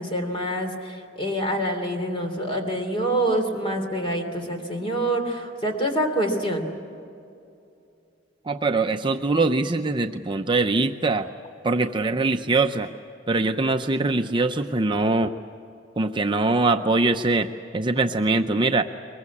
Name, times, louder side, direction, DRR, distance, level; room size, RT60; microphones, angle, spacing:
voice 1, 0.0-6.7, right 1 dB, 25° left, 4 dB, 3.1 m, -26 dB
voice 2, 8.5-11.3 11.6-12.9 13.3-15.3 16.0-18.8, right 3 dB, 25° right, 5 dB, 0.6 m, -22 dB
23.0 x 22.0 x 8.5 m, 2.6 s
head